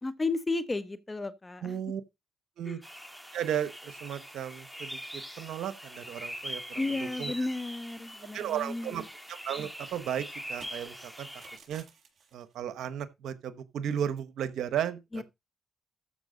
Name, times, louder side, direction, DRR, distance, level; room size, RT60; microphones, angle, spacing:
voice 1, 0.0-1.8 2.6-2.8 6.7-9.1 15.1-15.2, left 3 dB, 25° left, 1.3 m, -33 dB
voice 2, 1.6-2.0 2.6-2.8 3.3-7.5 8.3-9.0 9.3-11.3 11.7-11.8 12.3-15.2, right 9 dB, 80° right, 1.1 m, -35 dB
Early morning ambience, 2.8-11.6, equal, ahead, 1.7 m, -43 dB
sound 1, 5.0-5.1 5.4-5.5 5.8-6.4 6.7-8.1 8.4-12.8, right 5 dB, 60° right, 6.7 m, -59 dB
14.0 x 5.8 x 3.9 m
cardioid pair, 65°, 0 cm